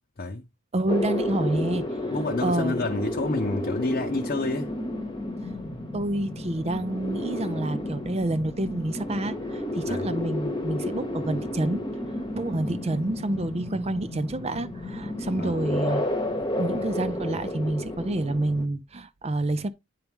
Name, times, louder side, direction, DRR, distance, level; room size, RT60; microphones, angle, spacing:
voice 1, 0.7-1.8 2.4-2.8 5.9-11.9 12.3-16.0 16.6-19.7, right 1 dB, 30° right, 0.6 m, -28 dB
sound 1, 0.9-18.7, left 1 dB, 20° left, 1.2 m, -31 dB
voice 2, 2.1-4.7 9.9-10.1 15.4-15.7, left 2 dB, 45° left, 0.8 m, -29 dB
9.3 x 4.6 x 3.5 m
head